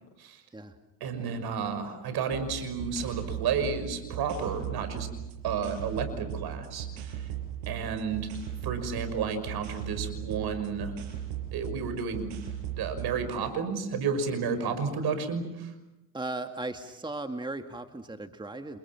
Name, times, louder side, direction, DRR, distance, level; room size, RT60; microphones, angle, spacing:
voice 1, 1.0-5.1 5.4-6.9 7.7-8.3 8.6-10.9 11.5-12.3 12.8-15.7, right 5 dB, 60° right, 10 dB, 5.9 m, -31 dB
sound 1, 2.3-13.4, right 10 dB, 80° right, 6.5 m, -38 dB
voice 2, 16.1-18.8, right 2 dB, 10° right, 6 dB, 2.1 m, -37 dB
29.5 x 29.0 x 6.1 m, 0.93 s
supercardioid pair, 75°, 43 cm